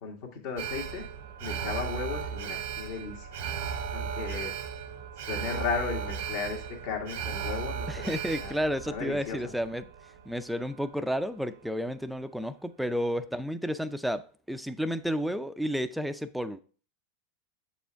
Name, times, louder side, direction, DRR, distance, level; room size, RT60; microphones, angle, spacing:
voice 1, 0.0-1.0 1.4-3.4 3.9-4.5 5.2-8.5 8.9-9.5, left 5 dB, 60° left, 1.7 m, -35 dB
Alarm, 0.6-10.8 11.2-11.3, right 7 dB, 70° right, 0.7 m, -36 dB
voice 2, 7.9-9.8 10.3-16.6, equal, ahead, 0.4 m, -31 dB
7.4 x 4.3 x 3.4 m
hypercardioid pair, 105°, 0 cm